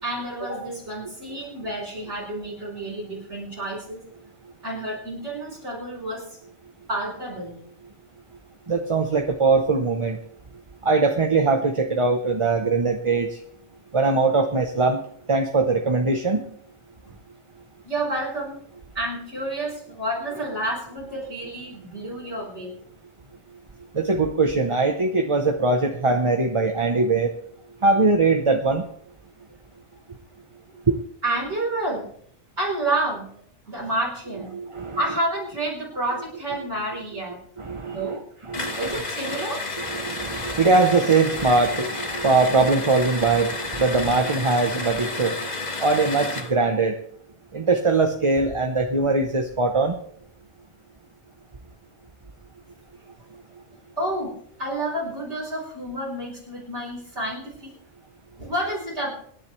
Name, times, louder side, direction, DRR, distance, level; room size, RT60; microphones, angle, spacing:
voice 1, 0.0-4.1 4.6-6.4 6.9-7.6 17.0-17.1 17.8-18.6 18.9-22.8 23.2-23.3 31.2-32.1 32.6-33.3 33.7-34.6 34.9-37.4 37.9-38.2 38.8-39.6 54.0-57.7 58.4-59.1, right 1 dB, 75° right, -6 dB, 4.8 m, -29 dB
voice 2, 8.7-10.2 10.8-13.4 13.9-15.0 15.3-16.4 23.9-27.3 27.8-28.8 34.5-35.0 37.6-39.0 39.8-45.5 45.8-46.9 47.5-50.0, right 3 dB, 30° right, 4 dB, 0.9 m, -21 dB
sound 1, 38.5-46.6, left 3 dB, 40° left, 1.5 m, -31 dB
25.5 x 10.5 x 3.2 m, 0.64 s
omnidirectional pair, 1.2 m